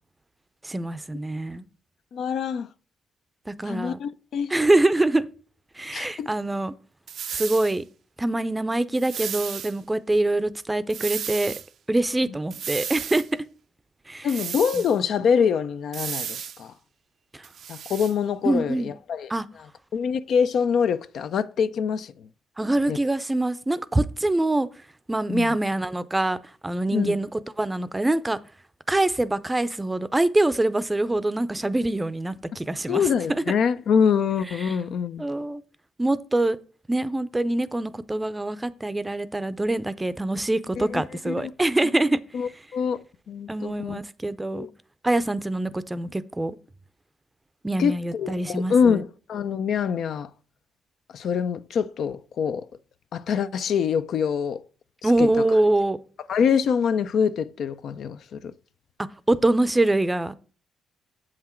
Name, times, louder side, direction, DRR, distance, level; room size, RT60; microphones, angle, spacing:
voice 1, 0.6-1.7 3.5-4.0 4.5-5.3 5.8-6.7 7.3-7.8 8.2-11.5 11.9-13.4 14.1-14.3 14.7-14.8 17.3-17.5 18.4-18.9 19.3-19.5 22.6-24.7 25.1-27.3 27.6-28.4 28.9-33.4 34.6-34.8 35.2-35.6 36.0-36.6 36.9-42.2 43.5-44.7 45.0-46.6 47.6-49.0 55.0-56.0 59.3-60.3, right 2 dB, 15° right, 0.5 m, -24 dB
voice 2, 2.1-2.7 3.6-4.5 5.9-6.3 14.2-16.7 17.7-19.3 19.9-22.3 22.9-23.0 25.3-25.5 26.9-27.2 32.9-35.2 40.8-41.5 42.3-43.0 43.3-44.0 44.5-44.7 47.8-50.3 51.1-52.7 53.1-54.6 55.0-55.3 56.3-58.5, left 7 dB, 65° left, 0.5 m, -25 dB
sound 1, 7.1-7.8 9.0-9.7 10.9-11.7 12.5-13.3 14.3-15.0 15.9-16.6 17.4-18.1, right 8 dB, 65° right, 0.5 m, -33 dB
7.5 x 5.8 x 4.4 m
cardioid pair, 90°, 0 cm